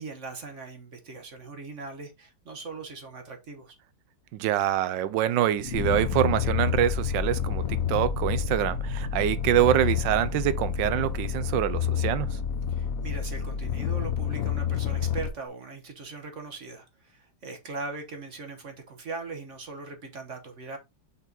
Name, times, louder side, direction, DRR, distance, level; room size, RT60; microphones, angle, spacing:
voice 1, 0.0-3.7 12.7-20.8, right 4 dB, 45° right, 1.2 m, -40 dB
voice 2, 4.3-12.4, right 12 dB, 80° right, 1.3 m, -25 dB
sound 1, 5.6-14.7, left 6 dB, 40° left, 1.5 m, -38 dB
sound 2, 5.7-15.3, left 8 dB, 65° left, 0.9 m, -29 dB
5.8 x 4.4 x 3.9 m
omnidirectional pair, 2.0 m